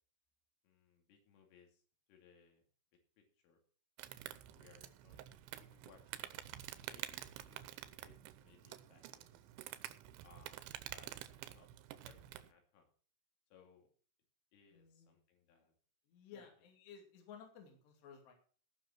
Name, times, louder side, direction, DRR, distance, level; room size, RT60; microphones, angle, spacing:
voice 1, 0.6-1.8 2.1-2.6 3.2-3.6 4.5-6.5 6.8-9.5 10.2-10.6 10.9-11.1 11.4-11.7 12.0-12.9 13.5-13.9 14.5-15.7 16.3-16.5, left 6 dB, 85° left, 2 dB, 5.2 m, -66 dB
Insect, 4.0-12.5, right 13 dB, 80° right, 3.1 m, -49 dB
voice 2, 14.7-15.1 15.5-15.6 16.1-18.3, left 7 dB, 65° left, 2 dB, 4.6 m, -56 dB
17.5 x 6.2 x 6.1 m, 0.43 s
omnidirectional pair, 5.6 m